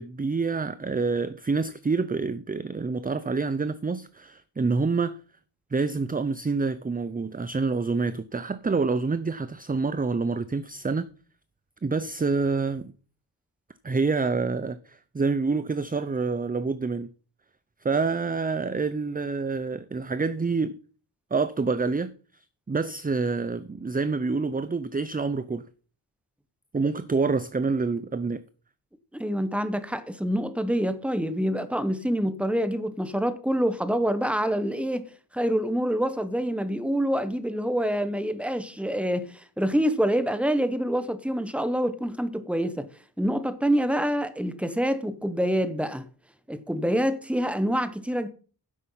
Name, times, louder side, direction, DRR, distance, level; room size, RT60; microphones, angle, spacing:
voice 1, 0.0-5.2 5.7-11.1 11.8-12.9 13.8-17.1 17.8-20.8 21.3-25.6 26.7-28.4, right 4 dB, 20° right, 0.5 m, -27 dB
voice 2, 29.1-42.9 43.2-46.1 46.5-48.3, equal, 5° right, 1.0 m, -26 dB
10.0 x 7.7 x 5.6 m
wide cardioid pair, 100°, 41 cm